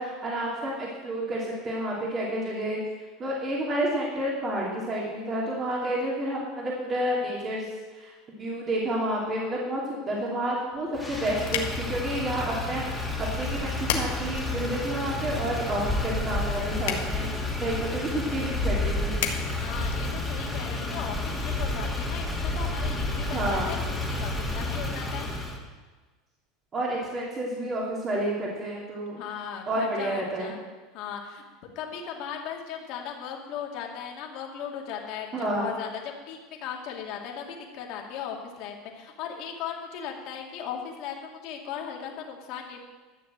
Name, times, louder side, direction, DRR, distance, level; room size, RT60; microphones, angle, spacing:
voice 1, 0.0-2.8 3.2-19.3 23.3-23.7 26.7-29.2 29.7-30.5 35.3-35.7, right 1 dB, 30° right, -4 dB, 2.8 m, -30 dB
sound 1, 10.7-20.7, left 8 dB, 85° left, 1.5 m, -38 dB
Motor vehicle (road), 10.9-25.6, left 2 dB, ahead, 2.3 m, -30 dB
voice 2, 19.6-25.3 29.2-30.6 30.9-31.4 31.8-42.8, left 8 dB, 60° left, 1 dB, 2.4 m, -37 dB
12.0 x 7.2 x 7.5 m, 1.3 s
supercardioid pair, 125°, 0 cm